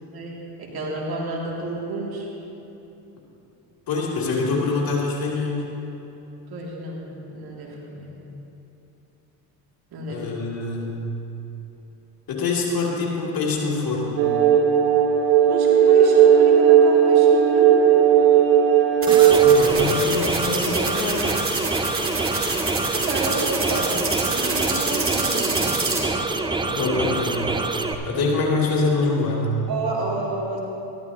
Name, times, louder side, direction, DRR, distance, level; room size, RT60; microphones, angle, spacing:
voice 1, 0.1-2.3 6.5-8.3 9.9-10.2 15.5-17.8 22.9-25.8 28.1-28.2 29.7-30.6, right 3 dB, 50° right, -3 dB, 2.4 m, -30 dB
voice 2, 3.9-5.7 10.1-11.0 12.3-14.3 19.4-21.4 26.7-27.5 28.0-29.6, left 3 dB, 50° left, -4 dB, 2.7 m, -25 dB
sound 1, 14.2-19.7, right 8 dB, 70° right, 1.2 m, -15 dB
sound 2, 19.0-26.0, right 3 dB, 30° right, 2.5 m, -26 dB
sound 3, 19.1-27.9, right 3 dB, 10° right, 0.5 m, -26 dB
14.0 x 12.0 x 2.8 m, 2.9 s
hypercardioid pair, 70°, 46 cm